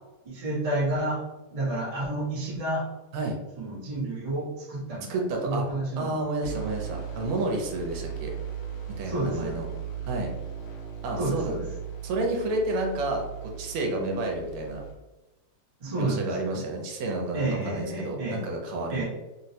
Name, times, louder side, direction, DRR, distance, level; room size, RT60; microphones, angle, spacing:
voice 1, 0.2-1.2 1.5-2.8 3.6-6.1 6.4-6.6 9.0-9.6 11.2-11.6 15.8-16.6 17.3-18.4 18.9-19.0, right 2 dB, 55° right, -6 dB, 0.4 m, -30 dB
voice 2, 5.1-5.6 6.0-8.4 8.9-9.7 10.1-10.3 11.0-11.5 12.0-14.8 16.0-19.0, right 2 dB, 80° right, 1 dB, 1.5 m, -30 dB
sound 1, 6.4-14.9, right 8 dB, 65° left, 1.4 m, -38 dB
3.8 x 2.0 x 2.7 m, 1.1 s
omnidirectional pair, 2.4 m